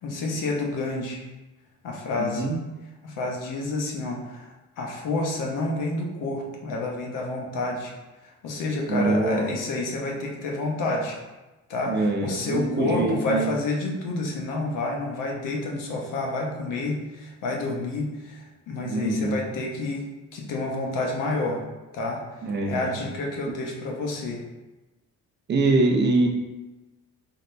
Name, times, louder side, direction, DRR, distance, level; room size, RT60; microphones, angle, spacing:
voice 1, 0.0-1.3 1.8-2.4 3.0-7.9 8.2-11.2 11.7-21.6 21.9-22.3 22.7-24.4, left 2 dB, 80° left, 0 dB, 1.1 m, -29 dB
voice 2, 2.2-2.6 8.9-9.4 11.9-13.5 18.8-19.4 22.4-23.0 25.5-26.3, right 2 dB, 35° right, 2 dB, 0.6 m, -24 dB
4.0 x 4.0 x 3.3 m, 1.1 s
cardioid pair, 175°, 32 cm